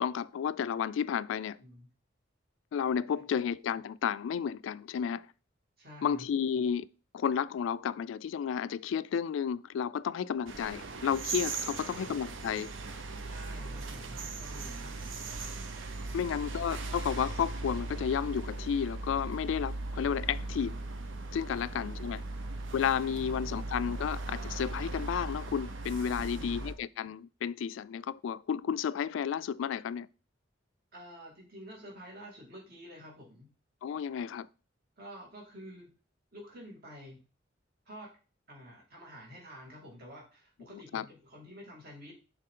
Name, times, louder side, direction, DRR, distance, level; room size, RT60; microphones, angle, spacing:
voice 1, 0.0-1.6 2.7-5.3 6.0-6.9 7.1-12.7 16.1-20.8 21.3-22.2 22.7-30.1 33.8-34.5 40.9-41.0, left 7 dB, 75° left, 0.3 m, -32 dB
voice 2, 5.8-6.3 11.7-12.3 13.3-14.9 16.1-16.4 23.1-23.7 26.1-26.7 30.9-33.5 35.0-35.9 36.3-37.2 37.9-38.1 38.5-42.1, equal, 55° right, 2.3 m, -49 dB
sound 1, 10.5-26.7, right 3 dB, 80° right, 0.8 m, -38 dB
6.6 x 4.0 x 3.7 m
head